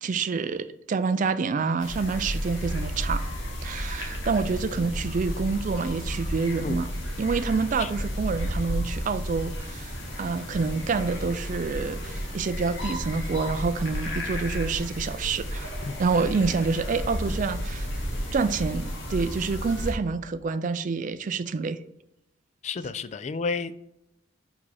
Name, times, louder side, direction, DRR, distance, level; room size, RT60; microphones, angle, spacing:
voice 1, 0.0-3.2 3.6-6.9 7.2-9.9 10.2-15.7 16.0-17.9 18.3-21.8, right 4 dB, 40° right, 0.3 m, -27 dB
sound 1, 1.8-19.9, equal, 65° left, 1.5 m, -32 dB
voice 2, 22.6-23.8, left 4 dB, 35° left, 0.3 m, -31 dB
5.5 x 4.8 x 4.7 m
head